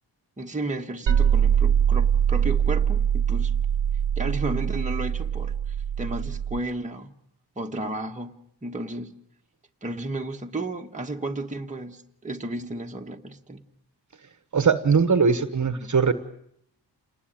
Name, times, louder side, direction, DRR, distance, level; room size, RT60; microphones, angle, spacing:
voice 1, 0.4-3.5 4.2-7.1 7.6-9.2 9.8-13.6, right 2 dB, 15° right, 1.3 m, -33 dB
sound 1, 1.1-6.6, right 8 dB, 75° right, 1.0 m, -23 dB
voice 2, 14.5-16.1, right 5 dB, 40° right, 1.2 m, -20 dB
28.5 x 19.5 x 8.9 m
wide cardioid pair, 175°, 44 cm